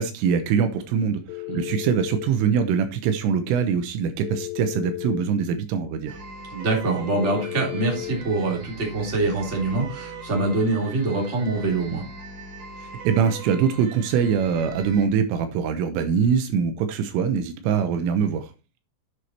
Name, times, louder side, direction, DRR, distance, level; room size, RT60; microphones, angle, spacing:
voice 1, 0.0-6.2 13.0-18.5, right 7 dB, 80° right, 3.4 m, -23 dB
Telephone, 1.3-2.3 4.2-5.3 7.2-8.2, left 25 dB, 85° left, 2.8 m, -33 dB
sound 1, 6.1-15.1, right 4 dB, 60° right, 3.4 m, -40 dB
voice 2, 6.5-12.0, right 3 dB, 20° right, 2.6 m, -24 dB
8.1 x 8.0 x 4.4 m
omnidirectional pair, 5.9 m